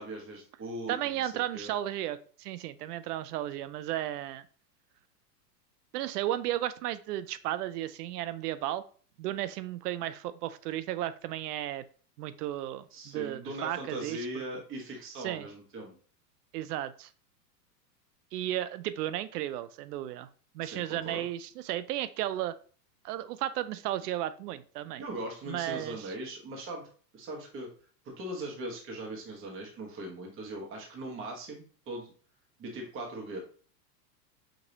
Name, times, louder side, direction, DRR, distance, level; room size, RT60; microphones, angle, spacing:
voice 1, 0.0-1.8 12.9-15.9 20.6-21.2 25.0-26.9 27.1-27.7 28.0-32.1 32.6-33.4, right 1 dB, 25° right, 0 dB, 1.2 m, -40 dB
voice 2, 0.9-4.4 5.9-8.8 9.2-11.8 12.2-14.4 15.2-15.5 16.5-17.1 18.3-20.3 20.5-22.5 23.0-25.0 25.5-26.1, right 13 dB, 70° right, 14 dB, 0.6 m, -34 dB
5.2 x 2.7 x 2.7 m, 0.42 s
hypercardioid pair, 125°, 50 cm